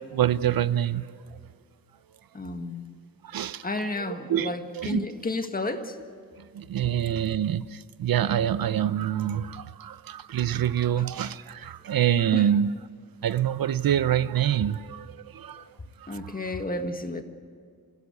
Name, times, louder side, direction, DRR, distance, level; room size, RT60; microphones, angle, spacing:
voice 1, 0.1-1.1 3.2-3.6 4.0-5.1 6.5-12.8 13.2-15.6 16.0-16.3, right 10 dB, 65° right, 0.6 m, -26 dB
voice 2, 2.3-2.8 3.6-6.0 11.0-11.1 12.3-12.5 15.6-15.7 16.1-17.2, left 2 dB, 20° left, 1.6 m, -32 dB
26.0 x 16.0 x 8.3 m
wide cardioid pair, 160°, 38 cm